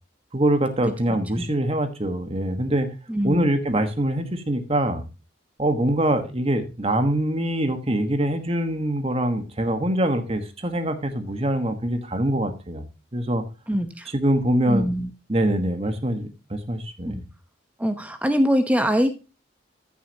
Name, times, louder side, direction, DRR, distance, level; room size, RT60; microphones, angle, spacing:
voice 1, 0.3-2.9 3.2-5.0 5.6-12.8 13.1-13.4 14.1-14.9 15.3-17.2, right 1 dB, 30° right, 8 dB, 1.4 m, -24 dB
voice 2, 1.1-1.5 3.1-3.5 13.7-14.1 14.7-15.1 17.1-17.2 17.8-19.1, equal, 5° right, 8 dB, 0.9 m, -23 dB
14.5 x 6.9 x 2.9 m, 0.29 s
head